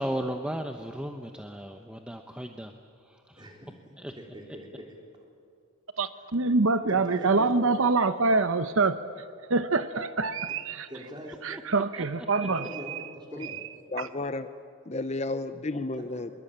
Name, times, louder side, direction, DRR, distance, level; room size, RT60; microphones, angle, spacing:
voice 1, 0.0-2.7 3.1-3.4 4.0-4.1 11.5-11.6 12.0-12.1, equal, 5° right, 4 dB, 0.9 m, -35 dB
voice 2, 3.4-4.9 6.1-6.2 6.9-7.5 10.9-11.4 12.4-13.6 15.9-16.0, equal, 20° right, 1 dB, 4.0 m, -42 dB
voice 3, 6.0-9.0 9.5-10.9 11.4-13.0 13.4-13.5 14.0-14.1, right 3 dB, 70° right, 11 dB, 0.9 m, -25 dB
voice 4, 13.9-14.5 14.9-16.3, left 2 dB, 30° left, 11 dB, 0.7 m, -32 dB
24.5 x 22.5 x 8.8 m, 2.4 s
head